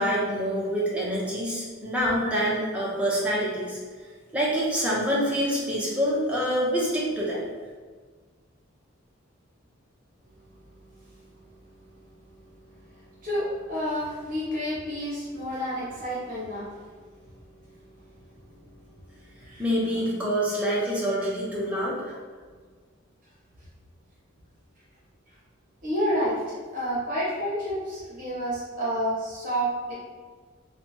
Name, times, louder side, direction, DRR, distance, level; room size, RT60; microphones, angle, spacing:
voice 1, 0.0-3.8 4.3-7.5 19.6-22.1, equal, 5° right, -6 dB, 0.6 m, -26 dB
voice 2, 13.2-16.7 19.4-19.6 20.7-20.8 25.8-29.9, equal, 40° right, -8 dB, 0.9 m, -29 dB
2.8 x 2.2 x 2.8 m, 1.5 s
head